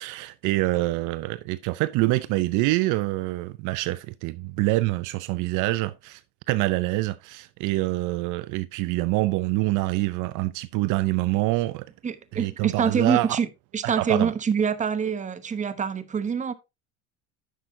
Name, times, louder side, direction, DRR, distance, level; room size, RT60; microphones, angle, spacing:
voice 1, 0.0-6.2 6.5-11.9 12.3-13.4 13.8-14.3, right 19 dB, 65° right, 0.6 m, -26 dB
voice 2, 12.0-13.5 13.7-16.5, right 6 dB, 20° right, 0.9 m, -25 dB
10.0 x 6.7 x 2.7 m
supercardioid pair, 110°, 34 cm